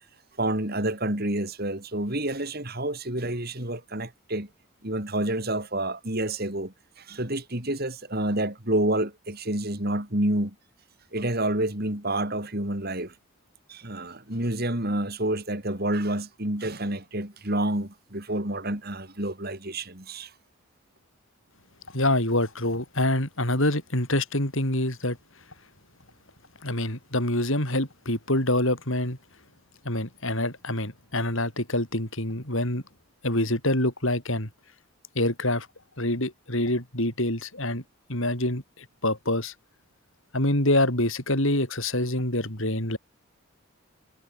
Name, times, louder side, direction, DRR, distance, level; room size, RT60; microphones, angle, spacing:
voice 1, 0.4-4.5 4.8-10.5 11.1-13.2 13.7-20.3, right 1 dB, 45° right, 3.7 m, -29 dB
voice 2, 21.9-25.2 26.6-29.2 29.8-32.8 33.2-34.5 35.1-35.7 36.0-37.8 38.1-39.5 40.3-43.0, left 1 dB, 60° left, 6.5 m, -26 dB
head